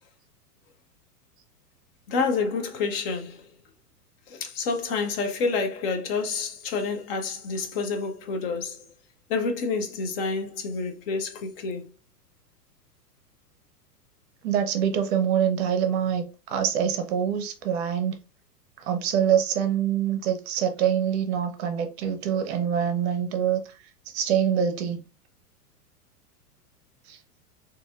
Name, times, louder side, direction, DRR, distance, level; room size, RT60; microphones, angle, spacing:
voice 1, 2.1-3.5 4.3-8.8 9.3-11.9, left 4 dB, 40° left, 0.6 m, -28 dB
voice 2, 14.4-18.2 18.8-23.6 24.1-25.0 27.1-27.2, right 8 dB, 45° right, 0.6 m, -25 dB
3.9 x 2.7 x 2.4 m
figure-of-eight pair, 100°, 47 cm